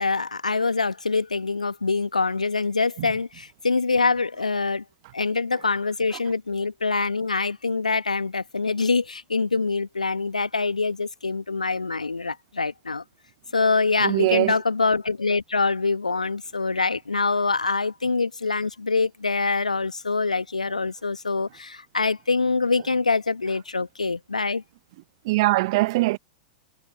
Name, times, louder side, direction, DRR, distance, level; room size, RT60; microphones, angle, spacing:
voice 1, 0.0-4.8 5.1-13.0 13.5-24.6, left 4 dB, 85° left, 1.5 m, -25 dB
voice 2, 14.0-14.6 25.2-26.2, right 21 dB, 50° right, 0.7 m, -22 dB
figure-of-eight pair, 100°, 4 cm